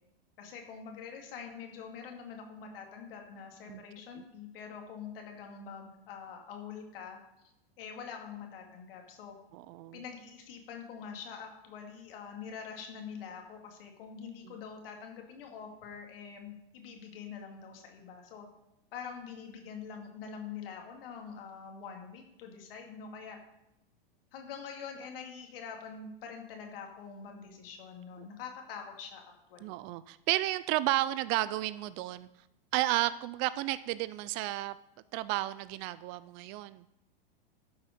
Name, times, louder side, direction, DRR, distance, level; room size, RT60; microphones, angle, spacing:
voice 1, 0.4-7.2 7.8-9.4 9.9-18.5 18.9-23.4 24.3-29.6, left 6 dB, 70° left, 2 dB, 2.4 m, -45 dB
voice 2, 9.5-10.0 14.4-14.5 28.2-28.3 29.6-32.3 32.7-34.8 35.1-36.8, right 16 dB, 40° right, 16 dB, 0.4 m, -32 dB
12.0 x 5.8 x 5.2 m, 0.87 s
hypercardioid pair, 110°, 30 cm